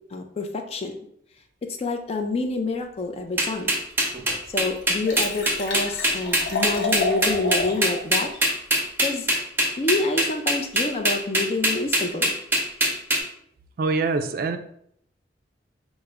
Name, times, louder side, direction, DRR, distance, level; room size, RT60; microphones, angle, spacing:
voice 1, 0.1-0.9 1.8-3.7 4.5-8.3 9.0-9.3 9.8-12.3, left 3 dB, 35° left, 5 dB, 0.4 m, -27 dB
sound 1, 3.4-13.2, right 1 dB, 10° right, 0.7 m, -21 dB
Liquid, 3.9-4.0 4.4-4.5 4.7-8.0 8.3-8.4, left 2 dB, 75° left, 0.8 m, -30 dB
voice 2, 13.8-14.6, right 3 dB, 55° right, 8 dB, 0.3 m, -24 dB
4.8 x 2.1 x 3.3 m, 0.69 s
head